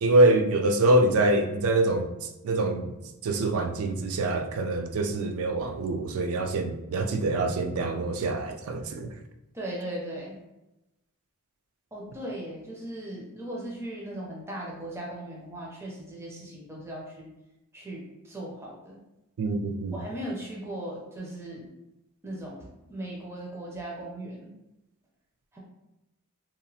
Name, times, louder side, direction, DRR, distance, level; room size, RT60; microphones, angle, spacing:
voice 1, 0.0-3.0 3.2-9.1 19.4-20.0, right 2 dB, 75° right, 6 dB, 0.4 m, -25 dB
voice 2, 9.5-10.4 11.9-17.3 17.7-19.0 19.9-21.7 22.2-24.5 25.5-25.6, right 1 dB, 10° right, -3 dB, 0.4 m, -38 dB
2.9 x 2.3 x 2.6 m, 0.96 s
head